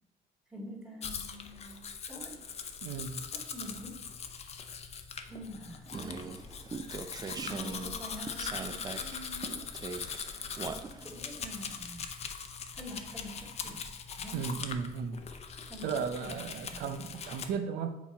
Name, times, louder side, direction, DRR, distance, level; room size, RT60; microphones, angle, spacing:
voice 1, 0.5-1.8 2.1-2.4 3.3-4.1 5.3-6.4 7.4-9.6 11.0-12.2 12.7-13.8 14.1-14.5 15.7-17.0, left 1 dB, 5° right, -3 dB, 2.1 m, -46 dB
Domestic sounds home sounds, 1.0-17.5, left 6 dB, 40° left, 0.6 m, -41 dB
voice 2, 2.8-3.2 14.3-15.2 15.8-18.0, right 6 dB, 75° right, 8 dB, 0.7 m, -35 dB
sound 1, 5.9-11.3, right 4 dB, 25° right, 0.5 m, -41 dB
6.9 x 4.2 x 4.2 m, 1.0 s
cardioid pair, 110°, 17 cm